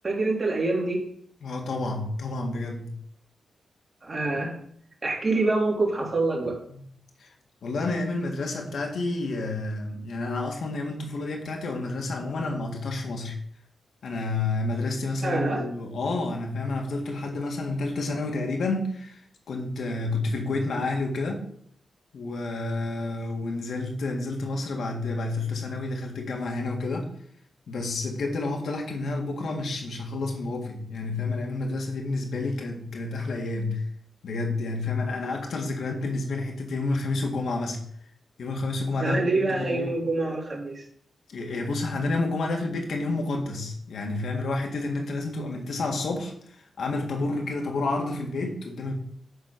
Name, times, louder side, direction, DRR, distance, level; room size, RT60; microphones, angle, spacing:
voice 1, 0.0-1.0 4.0-4.6 5.0-6.6 15.2-15.6 39.0-40.8, right 2 dB, 30° right, -2 dB, 3.2 m, -26 dB
voice 2, 1.4-2.9 6.7-6.8 7.2-7.3 7.6-13.4 14.0-19.2 19.5-21.5 22.1-27.1 27.7-33.9 34.2-37.8 38.4-40.0 41.3-46.3 46.8-48.9, left 2 dB, 70° left, 1 dB, 1.9 m, -29 dB
10.5 x 4.2 x 6.0 m, 0.64 s
cardioid pair, 95°, 0 cm